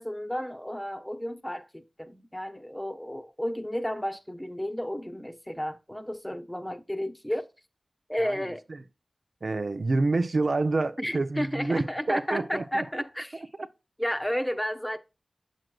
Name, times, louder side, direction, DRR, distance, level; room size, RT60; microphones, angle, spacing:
voice 1, 0.0-7.4 8.1-8.6 11.0-13.5 14.0-15.0, equal, 10° left, 0.9 m, -32 dB
voice 2, 9.4-12.8, right 3 dB, 65° right, 0.6 m, -28 dB
7.7 x 6.3 x 2.3 m
cardioid pair, 45°, 0 cm